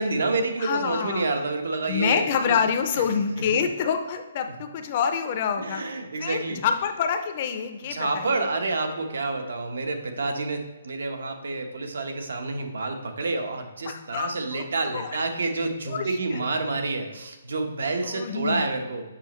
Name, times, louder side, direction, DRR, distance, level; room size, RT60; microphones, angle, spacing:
voice 1, 0.0-2.6 3.5-3.6 5.6-6.6 7.9-19.0, right 3 dB, 85° right, 5 dB, 0.9 m, -28 dB
voice 2, 0.6-1.3 1.9-5.8 6.2-8.5 13.8-14.6 14.9-15.1 15.9-16.4 18.0-18.6, left 7 dB, 25° left, 6 dB, 0.4 m, -27 dB
7.3 x 5.2 x 3.1 m, 1.1 s
hypercardioid pair, 180°, 0 cm